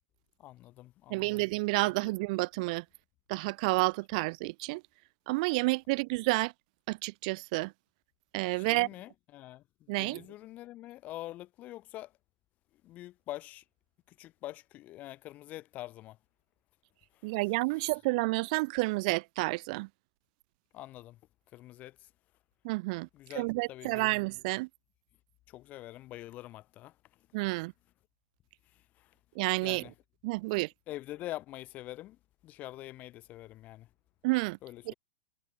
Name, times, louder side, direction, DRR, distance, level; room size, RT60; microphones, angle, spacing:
voice 1, 0.4-1.4 2.0-2.1 8.5-12.1 12.8-13.6 14.1-16.2 17.2-17.9 20.7-21.2 21.5-22.0 23.1-24.2 25.5-26.9 29.0-29.1 29.5-29.9 30.9-32.2 32.4-33.9 34.6-34.9, left 15 dB, 25° left, 3.1 m, -45 dB
voice 2, 1.1-2.8 3.3-4.8 5.3-6.5 6.9-7.7 8.3-8.9 9.9-10.2 17.2-19.9 22.6-23.1 23.3-24.7 27.3-27.7 29.4-29.8 30.2-30.7 34.2-34.6 34.9-35.0, right 25 dB, 35° right, 1.2 m, -30 dB
supercardioid pair, 165°, 7 cm